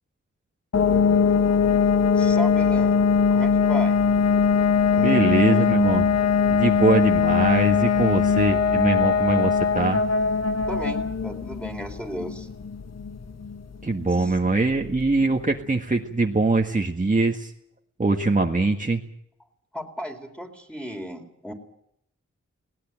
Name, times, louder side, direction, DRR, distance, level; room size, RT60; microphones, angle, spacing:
sound 1, 0.7-15.3, left 6 dB, 60° left, 1.5 m, -21 dB
voice 1, 2.1-3.0 3.3-4.0 4.9-5.7 10.7-12.5 14.1-14.3 19.7-21.5, equal, 5° left, 4 dB, 4.0 m, -35 dB
voice 2, 5.0-6.2 6.5-10.0 13.8-17.5 18.0-19.0, right 3 dB, 25° right, 1 dB, 1.7 m, -22 dB
21.0 x 18.5 x 8.9 m, 0.75 s
wide cardioid pair, 90°, 29 cm